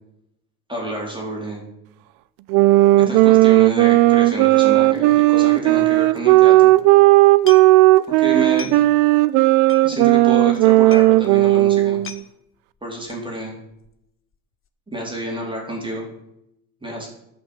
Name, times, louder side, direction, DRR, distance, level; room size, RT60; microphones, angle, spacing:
voice 1, 0.7-1.6 3.0-6.7 8.1-8.8 9.8-12.0 12.8-13.5 14.9-16.1 16.8-17.1, right 1 dB, 10° right, -1 dB, 4.0 m, -29 dB
sound 1, 2.5-12.2, right 18 dB, 60° right, 0.6 m, -14 dB
sound 2, 7.3-8.1 8.4-9.0 9.3-9.4 9.6-10.3 10.6-10.7 10.9-11.2 11.5-11.6 11.8-12.3 13.1-13.3 13.7-14.0 14.3-14.4, left 7 dB, 25° left, 1.0 m, -38 dB
11.0 x 6.1 x 8.7 m, 0.80 s
supercardioid pair, 95°, 47 cm